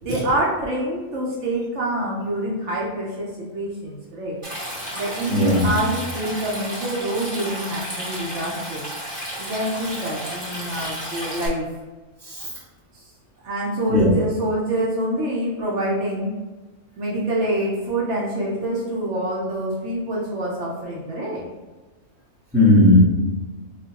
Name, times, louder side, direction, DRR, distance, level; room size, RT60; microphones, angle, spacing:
voice 1, 0.0-4.4 4.9-8.9 9.4-11.7 12.9-13.0 13.4-16.4 17.0-21.5, right 1 dB, 65° right, -4 dB, 1.0 m, -26 dB
Stream, 4.4-11.5, equal, 25° right, 1.0 m, -32 dB
voice 2, 5.3-5.8 10.8-10.9 12.3-12.5 13.9-14.2 22.5-23.0, left 1 dB, ahead, -8 dB, 1.1 m, -16 dB
4.8 x 2.4 x 2.8 m, 1.2 s
omnidirectional pair, 1.4 m